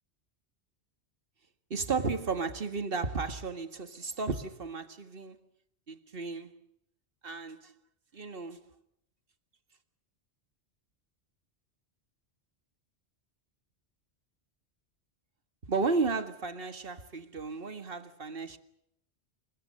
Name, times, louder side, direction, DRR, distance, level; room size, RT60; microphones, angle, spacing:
voice 1, 1.7-5.4 5.9-6.6 7.2-7.7 8.1-8.6 15.7-18.6, right 4 dB, 55° right, 2.0 m, -33 dB
28.0 x 23.5 x 6.6 m
omnidirectional pair, 1.1 m